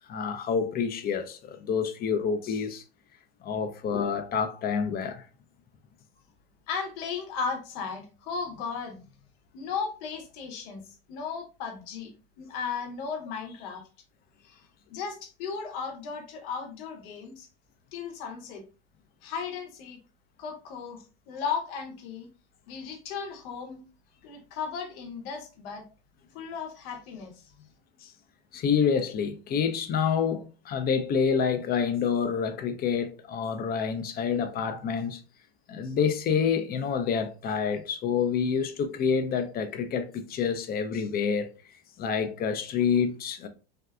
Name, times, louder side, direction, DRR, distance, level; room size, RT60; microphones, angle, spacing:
voice 1, 0.1-2.8 3.4-5.2 28.0-28.1 28.5-35.2 35.7-41.5 42.0-43.5, left 6 dB, 30° left, 0.4 m, -28 dB
voice 2, 6.7-9.2 9.5-13.9 14.4-14.6 14.9-17.5 17.9-18.6 19.2-20.0 20.4-21.0 21.3-22.3 22.7-23.8 24.2-25.8 26.3-27.7, left 5 dB, 70° left, 0.9 m, -36 dB
2.6 x 2.2 x 2.3 m
hypercardioid pair, 90°, 31 cm